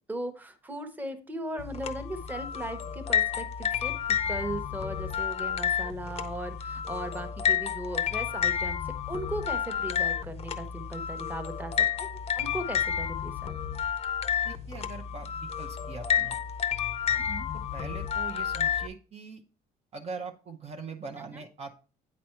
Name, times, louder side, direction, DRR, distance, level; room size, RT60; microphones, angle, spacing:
voice 1, 0.1-3.9 4.3-8.8 9.1-13.6 17.1-17.5, right 1 dB, 10° right, 7 dB, 1.0 m, -38 dB
sound 1, 1.6-18.9, left 8 dB, 35° left, 0.6 m, -30 dB
voice 2, 14.4-16.4 17.5-19.4 19.9-21.7, right 4 dB, 40° right, 2 dB, 0.7 m, -42 dB
8.7 x 4.2 x 4.4 m, 0.37 s
cardioid pair, 110°, 17 cm